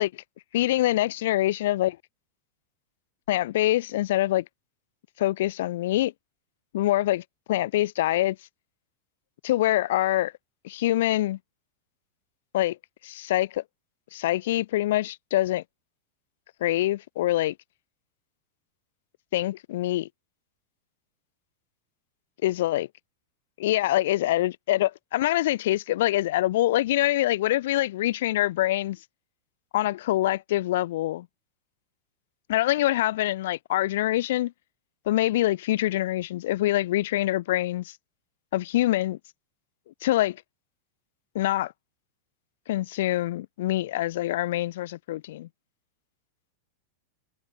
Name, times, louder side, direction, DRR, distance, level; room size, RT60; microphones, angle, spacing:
voice 1, 0.5-2.0 3.3-4.4 5.2-6.1 6.7-8.4 9.4-10.3 10.6-11.4 12.5-12.8 13.0-13.6 14.1-15.6 16.6-17.5 19.3-20.1 22.4-22.9 23.6-29.0 29.7-31.3 32.5-34.5 35.1-37.9 38.5-39.2 39.9-40.4 41.3-41.7 42.7-45.5, left 15 dB, 55° left, 0.7 m, -25 dB
figure-of-eight pair, 90°, 0 cm